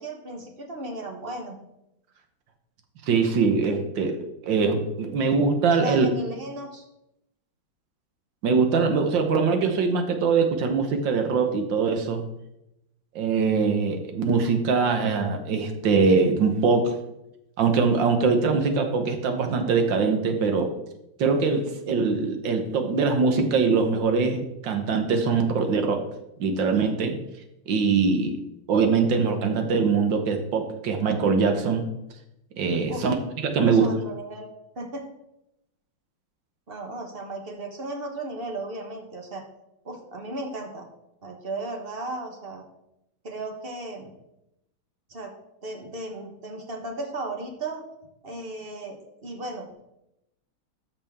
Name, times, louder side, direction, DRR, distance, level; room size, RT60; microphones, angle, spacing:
voice 1, 0.0-1.6 5.7-6.8 32.9-33.0 33.6-34.5 34.8-35.0 36.7-39.4 39.8-40.9 41.2-42.6 43.2-44.1 45.1-45.3 45.6-47.8 48.2-49.8, right 2 dB, 35° right, 2 dB, 1.1 m, -35 dB
voice 2, 3.1-4.2 4.4-6.1 8.4-12.2 13.1-17.0 17.6-20.7 21.2-26.0 26.4-27.2 27.7-28.3 28.7-31.8 32.6-33.1 33.4-33.9, right 4 dB, 65° right, 5 dB, 1.7 m, -22 dB
13.0 x 5.8 x 3.6 m, 0.87 s
omnidirectional pair, 2.2 m